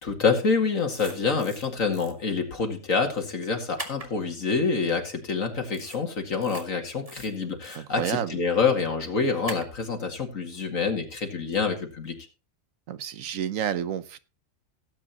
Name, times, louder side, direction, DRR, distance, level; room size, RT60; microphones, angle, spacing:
voice 1, 0.0-12.1, left 5 dB, 85° left, 3 dB, 2.5 m, -27 dB
sound 1, 0.9-1.7 1.9-2.1 3.8-4.1 5.7-6.0 6.4-6.6 7.0-7.8 9.5-9.7, right 2 dB, 25° right, 2.1 m, -40 dB
voice 2, 7.8-8.4 12.9-14.2, right 9 dB, 85° right, 14 dB, 1.2 m, -30 dB
17.5 x 8.7 x 2.9 m, 0.32 s
omnidirectional pair, 1.3 m